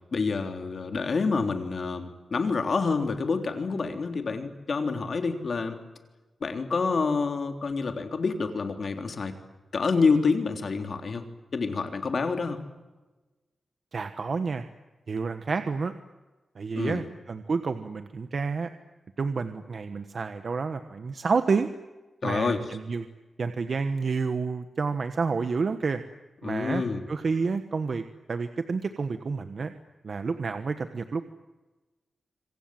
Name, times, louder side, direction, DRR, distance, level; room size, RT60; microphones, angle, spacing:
voice 1, 0.1-5.8 6.4-9.3 9.7-11.2 11.5-12.6 16.7-17.0 22.2-22.6 26.4-27.0, left 4 dB, 55° left, 6 dB, 3.4 m, -27 dB
voice 2, 13.9-14.6 15.1-15.9 16.5-18.7 19.2-21.7 22.2-23.0 23.4-26.0 26.4-26.8 27.1-28.0 28.3-29.7 30.0-31.2, right 4 dB, 55° right, 9 dB, 1.3 m, -29 dB
26.5 x 25.5 x 7.7 m, 1.2 s
wide cardioid pair, 115°, 0 cm